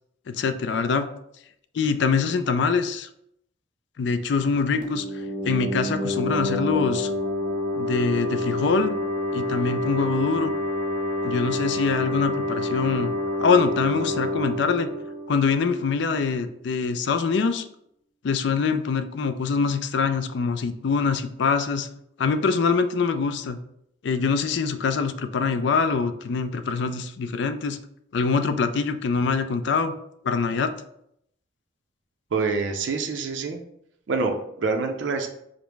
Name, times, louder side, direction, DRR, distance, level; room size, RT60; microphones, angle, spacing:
voice 1, 0.3-1.1 1.7-3.1 4.0-5.1 5.4-7.1 7.7-8.9 9.3-10.5 11.2-13.1 13.4-14.9 15.3-17.7 18.2-21.9 22.2-23.6 24.0-27.8 28.1-29.9 30.2-30.7, left 5 dB, 60° left, 9 dB, 0.4 m, -24 dB
sound 1, 4.8-16.2, left 1 dB, 45° left, 0.8 m, -28 dB
voice 2, 32.3-33.6 34.1-35.3, right 4 dB, 70° right, 3 dB, 0.5 m, -26 dB
5.1 x 2.0 x 4.6 m, 0.74 s
head